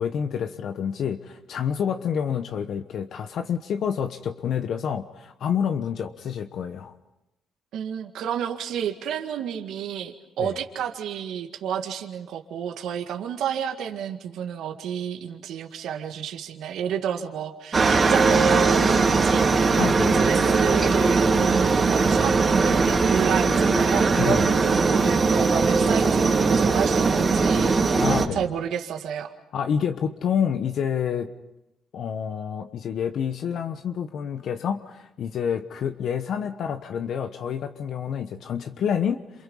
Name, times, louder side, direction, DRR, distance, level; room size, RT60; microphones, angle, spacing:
voice 1, 0.0-6.9 10.4-10.5 19.8-20.2 24.2-24.5 28.0-28.4 29.5-31.3 31.9-39.4, left 8 dB, 70° left, 8 dB, 1.1 m, -28 dB
voice 2, 7.7-19.5 19.8-22.3 22.7-28.1 28.3-29.3, right 8 dB, 80° right, 4 dB, 1.9 m, -31 dB
Aircraft, 17.7-28.3, right 4 dB, 35° right, 3.2 m, -20 dB
28.0 x 28.0 x 5.6 m, 0.91 s
cardioid pair, 90°, 0 cm